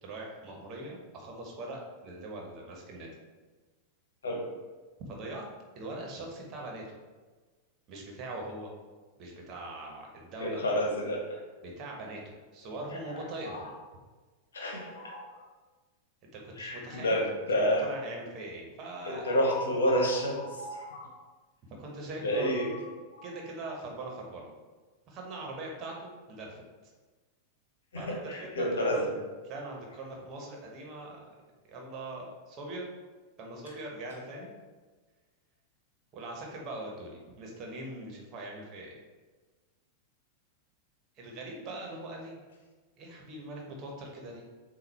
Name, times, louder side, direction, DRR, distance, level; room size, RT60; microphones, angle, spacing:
voice 1, 0.0-3.1 5.0-5.4 5.7-6.8 7.9-8.7 9.2-10.6 11.6-13.7 16.3-17.2 17.5-19.3 21.8-22.6 23.2-24.5 25.1-26.9 27.9-29.1 29.4-31.2 31.7-32.9 33.4-34.5 36.1-38.9 41.2-42.4 43.0-44.4, right 2 dB, 35° right, -1 dB, 1.4 m, -41 dB
voice 2, 10.4-11.2 13.4-13.6 14.5-15.4 16.6-17.8 19.0-21.1 22.2-22.8 23.1-23.2 27.9-29.1, equal, 65° left, 0 dB, 1.2 m, -29 dB
7.9 x 2.7 x 4.3 m, 1.3 s
figure-of-eight pair, 90°, 0 cm